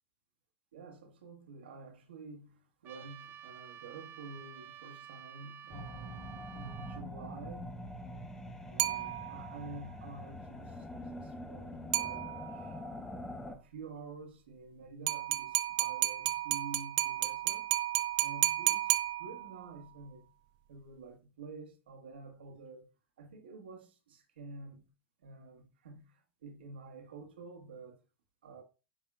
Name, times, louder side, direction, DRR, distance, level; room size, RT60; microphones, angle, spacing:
voice 1, 0.7-7.7 8.7-10.9 11.2-12.8 13.5-17.7 18.2-20.3 20.7-22.9 23.2-24.9 25.2-28.0 28.4-28.6, right 3 dB, 75° right, 1.5 m, -49 dB
Trumpet, 2.8-7.0, right 10 dB, 40° right, 1.0 m, -51 dB
sound 1, 5.7-13.6, left 1 dB, 10° left, 1.0 m, -44 dB
sound 2, 8.8-9.6 11.9-12.7 15.1-19.7, right 17 dB, 60° right, 0.5 m, -32 dB
9.7 x 4.3 x 2.4 m
hypercardioid pair, 85°, 6 cm